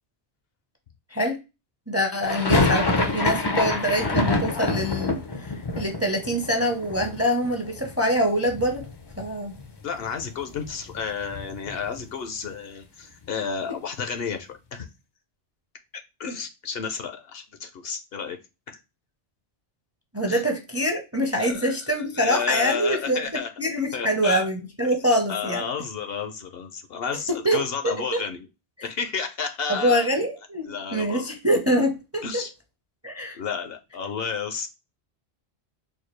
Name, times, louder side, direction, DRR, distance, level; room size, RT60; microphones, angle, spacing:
voice 1, 1.1-1.4 1.9-5.1 5.4-8.8 9.2-9.6 20.1-23.2 23.6-25.6 27.4-28.2 29.7-32.2 33.0-33.4, equal, 15° right, 0.6 m, -24 dB
sound 1, 2.2-8.2 8.4-9.3 9.6-9.7 9.9-12.1, left 3 dB, 35° left, 0.4 m, -27 dB
voice 2, 9.8-14.9 16.2-18.4 18.7-18.8 20.3-20.4 21.4-21.8 22.1-23.5 23.9-24.5 25.3-28.5 28.8-30.1 30.6-31.3 32.2-32.5 33.3-34.7, left 6 dB, 65° left, 0.8 m, -31 dB
4.2 x 2.3 x 3.0 m
omnidirectional pair, 1.1 m